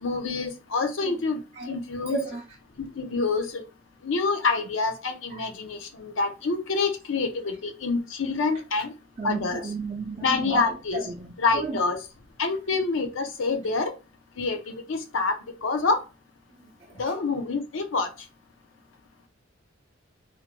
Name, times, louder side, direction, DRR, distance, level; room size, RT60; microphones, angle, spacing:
voice 1, 0.0-1.4 1.7-2.2 3.0-3.6 4.0-8.9 9.2-9.6 10.2-11.1 11.4-12.0 12.4-13.9 14.4-15.4 15.6-16.0 17.0-18.1, left 4 dB, 80° left, 0.6 m, -27 dB
voice 2, 2.1-2.4 5.3-5.5 9.2-10.7 10.9-11.8, right 4 dB, 30° right, 0.3 m, -33 dB
2.5 x 2.1 x 2.9 m
head